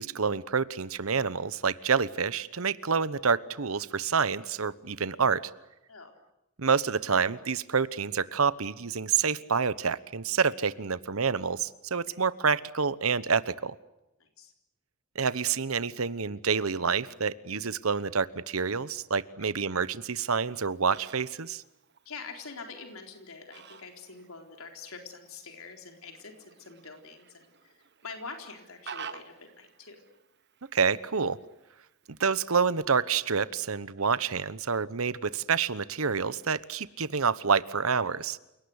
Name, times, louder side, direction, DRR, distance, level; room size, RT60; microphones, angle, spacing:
voice 1, 0.0-5.5 6.6-13.8 15.1-21.6 30.7-31.4 32.1-38.4, right 5 dB, 85° right, 16 dB, 1.1 m, -28 dB
voice 2, 14.2-14.5 22.1-30.0, left 4 dB, 85° left, 4 dB, 4.0 m, -45 dB
Fowl, 20.4-32.3, right 7 dB, 55° right, 1.5 m, -51 dB
29.0 x 18.5 x 9.6 m, 0.92 s
head